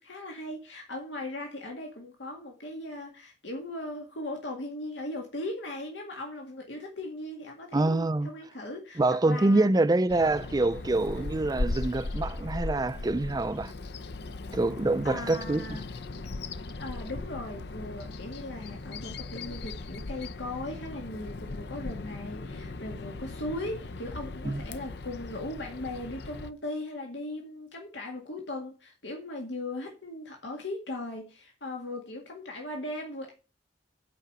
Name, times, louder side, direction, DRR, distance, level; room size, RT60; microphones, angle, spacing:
voice 1, 0.0-9.9 11.1-11.3 15.0-15.8 16.8-33.3, left 1 dB, 85° left, 1.9 m, -38 dB
voice 2, 7.7-8.3 9.0-13.7 14.5-15.8 24.4-24.6, right 2 dB, 20° right, 0.4 m, -26 dB
Bird vocalization bird call bird song, 10.1-26.5, left 2 dB, 65° left, 0.6 m, -38 dB
8.1 x 5.1 x 7.5 m
head